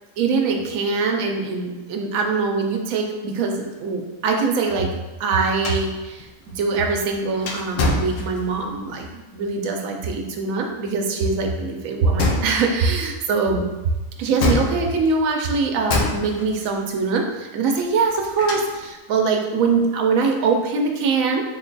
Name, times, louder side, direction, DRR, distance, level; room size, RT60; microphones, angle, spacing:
voice 1, 0.2-4.9 5.2-6.3 6.5-13.7 14.2-21.4, right 4 dB, 85° right, 2 dB, 1.0 m, -22 dB
sound 1, 5.6-8.8 12.2-12.9 14.4-15.2 15.9-16.7 18.0-18.9, left 2 dB, 80° left, 1.0 m, -25 dB
3.6 x 2.2 x 3.8 m, 1.1 s
omnidirectional pair, 1.4 m